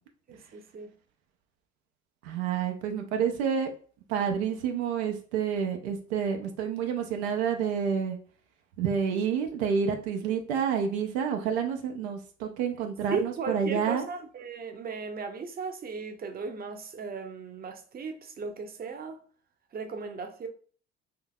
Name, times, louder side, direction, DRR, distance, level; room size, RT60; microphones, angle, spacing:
voice 1, 0.3-0.9 13.1-19.2 19.7-20.5, right 4 dB, 30° right, 0.6 m, -36 dB
voice 2, 2.2-3.7 4.1-8.2 8.8-14.1, right 7 dB, 80° right, 0.5 m, -29 dB
3.6 x 2.7 x 2.2 m
hypercardioid pair, 55°, 32 cm